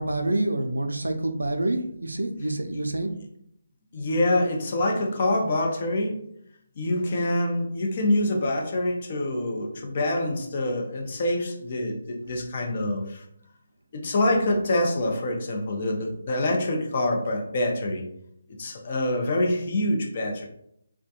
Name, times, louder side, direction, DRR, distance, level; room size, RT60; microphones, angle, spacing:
voice 1, 0.0-3.1, right 1 dB, 85° right, 6 dB, 0.4 m, -27 dB
voice 2, 3.9-6.2 6.8-13.2 13.9-18.0 18.6-20.5, left 1 dB, 45° left, 1 dB, 0.5 m, -26 dB
2.3 x 2.2 x 2.7 m, 0.73 s
figure-of-eight pair, 150°, 0 cm